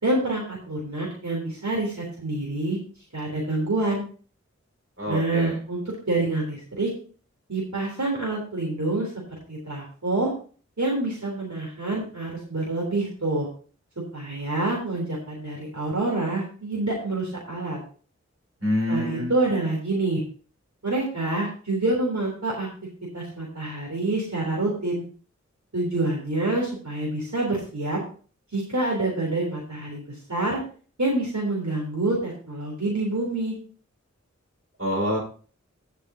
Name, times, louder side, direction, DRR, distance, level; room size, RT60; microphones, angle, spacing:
voice 1, 0.0-2.8 3.1-4.0 5.1-6.9 7.5-9.1 9.5-10.3 10.8-13.5 14.1-17.8 18.9-20.2 20.8-22.7 23.1-25.0 25.7-28.0 28.5-30.6 31.0-33.5, right 2 dB, 70° right, -3 dB, 3.6 m, -27 dB
voice 2, 5.0-5.6 18.6-19.3 34.8-35.2, left 1 dB, 50° right, -1 dB, 4.9 m, -26 dB
17.0 x 6.8 x 2.8 m, 0.41 s
wide cardioid pair, 45°, 29 cm